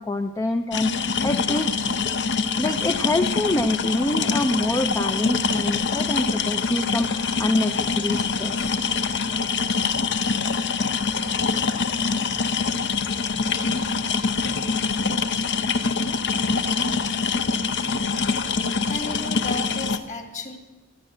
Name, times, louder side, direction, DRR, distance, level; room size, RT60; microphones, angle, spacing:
voice 1, 0.0-1.7 2.6-8.7, left 1 dB, 15° left, 8 dB, 0.5 m, -25 dB
sound 1, 0.7-20.0, left 5 dB, 55° left, 0.8 m, -24 dB
voice 2, 18.6-20.6, left 2 dB, 35° left, 6 dB, 1.9 m, -34 dB
15.5 x 11.0 x 7.8 m, 1.2 s
head